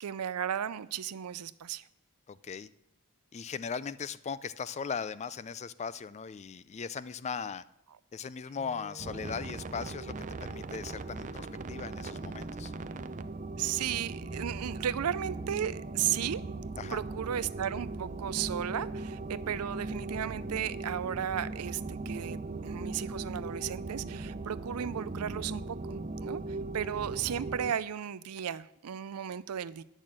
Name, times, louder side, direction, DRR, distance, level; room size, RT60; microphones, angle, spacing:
voice 1, 0.0-1.9 13.6-16.4 16.9-26.4 26.7-29.8, right 9 dB, 90° right, 17 dB, 0.5 m, -35 dB
voice 2, 2.3-2.7 3.3-7.6 8.1-10.1 10.4-12.7 16.8-17.0, left 6 dB, 30° left, 17 dB, 0.4 m, -38 dB
Wind instrument woodwind instrument, 8.6-13.2, right 1 dB, 5° right, 1.1 m, -52 dB
sound 1, 9.0-27.7, right 3 dB, 35° right, 0.5 m, -39 dB
10.0 x 6.4 x 7.5 m, 0.83 s
head